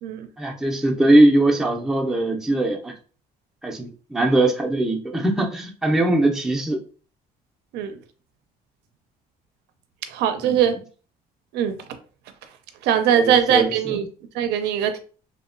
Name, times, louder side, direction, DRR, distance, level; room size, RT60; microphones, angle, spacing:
voice 1, 0.4-2.9 3.6-6.8 10.4-10.5 13.1-14.0, right 1 dB, 5° right, 0.4 m, -20 dB
voice 2, 10.1-10.7 11.5-11.8 12.8-14.1 14.3-15.0, right 9 dB, 80° right, 0.4 m, -21 dB
2.8 x 2.1 x 2.4 m
cardioid pair, 110°, 17 cm